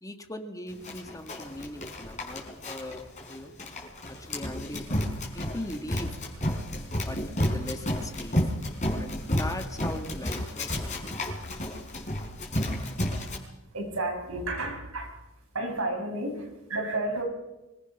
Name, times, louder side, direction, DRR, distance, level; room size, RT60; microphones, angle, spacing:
voice 1, 0.0-3.5 4.1-5.0 5.3-6.2 7.1-7.2 7.5-8.4 8.9-11.2, left 1 dB, 15° left, 6 dB, 1.8 m, -40 dB
Run, 0.8-13.4, left 1 dB, 35° left, 4.4 m, -31 dB
voice 2, 13.7-15.1 15.5-17.2, right 2 dB, 75° right, 2 dB, 6.1 m, -31 dB
25.0 x 20.0 x 5.9 m, 1.0 s
head